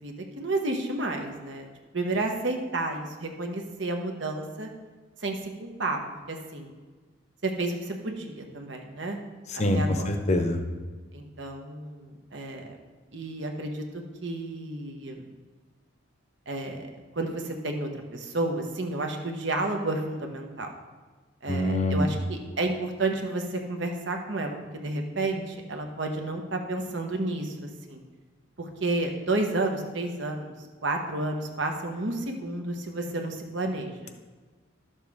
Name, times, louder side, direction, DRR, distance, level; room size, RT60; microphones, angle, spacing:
voice 1, 0.0-1.7 1.9-4.7 5.2-6.0 6.3-6.7 7.4-9.2 9.5-10.1 11.1-12.8 13.1-13.8 14.2-15.3 16.5-20.7 21.4-24.6 24.8-28.0 28.6-30.5 30.8-34.1, right 2 dB, 60° right, 3 dB, 1.1 m, -31 dB
voice 2, 9.5-10.6 21.5-22.1, left 1 dB, 35° left, 5 dB, 0.8 m, -25 dB
12.0 x 7.2 x 3.6 m, 1.4 s
head